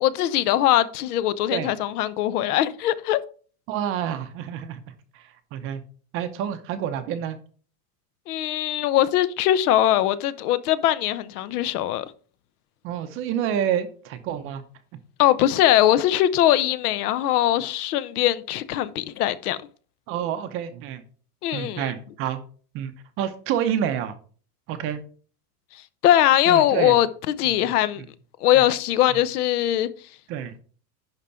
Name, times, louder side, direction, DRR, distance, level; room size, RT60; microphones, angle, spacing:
voice 1, 0.0-3.2 8.3-12.1 15.2-19.6 21.4-21.9 26.0-28.0 28.4-29.9, left 12 dB, 65° left, 0.8 m, -21 dB
voice 2, 3.7-4.8 5.1-5.8 6.1-7.4 12.8-14.6 20.1-21.0 21.5-22.4 22.7-22.9 23.2-24.2 24.7-25.0 26.5-27.0 27.4-28.1 28.5-28.6 29.1-29.2 30.3-30.6, right 9 dB, 25° right, 0.7 m, -28 dB
11.0 x 3.8 x 5.7 m
supercardioid pair, 165°, 48 cm